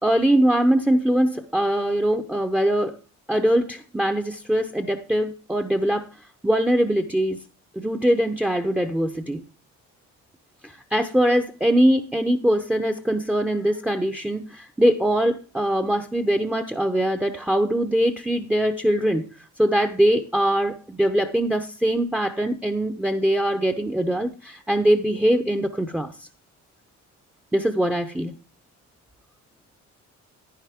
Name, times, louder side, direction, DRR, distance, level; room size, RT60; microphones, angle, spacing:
voice 1, 0.0-3.0 3.3-6.1 6.4-7.4 7.8-9.4 10.6-19.3 19.6-26.1 27.5-28.3, right 1 dB, 5° right, 0.8 m, -22 dB
10.5 x 9.9 x 3.6 m
cardioid pair, 90°, 30 cm